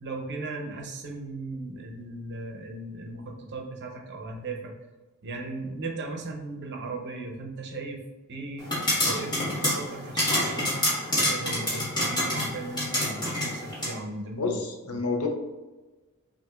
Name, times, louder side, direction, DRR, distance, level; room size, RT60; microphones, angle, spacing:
voice 1, 0.0-4.7 5.2-8.0 8.3-8.7 9.0-14.6 14.9-15.0, right 2 dB, 50° right, 1 dB, 0.7 m, -37 dB
sound 1, 8.6-13.9, left 1 dB, 20° left, 1.4 m, -27 dB
voice 2, 14.4-15.3, left 3 dB, 80° left, 2 dB, 0.7 m, -29 dB
5.9 x 2.6 x 2.4 m, 1.2 s
head